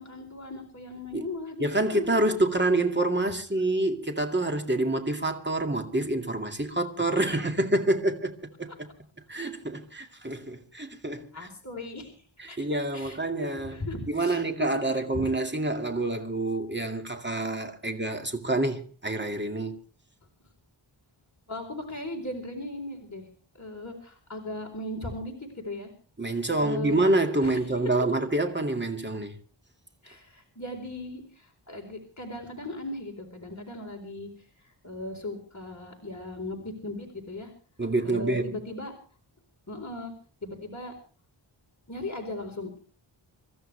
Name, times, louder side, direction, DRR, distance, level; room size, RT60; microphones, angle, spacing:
voice 1, 0.0-2.2 11.3-12.2 12.5-13.2 13.6-15.3 21.5-23.3 23.6-25.9 26.6-27.0 27.4-27.6 30.0-34.3 34.8-37.5 38.0-38.9 39.7-40.1 40.4-40.9 41.9-42.8, left 2 dB, 35° left, 4.1 m, -37 dB
voice 2, 1.6-8.3 8.6-8.9 9.3-11.5 12.4-13.8 14.1-19.8 26.2-29.3 37.8-38.5, right 2 dB, 20° right, 2.3 m, -27 dB
27.0 x 14.0 x 3.4 m
wide cardioid pair, 70°, 48 cm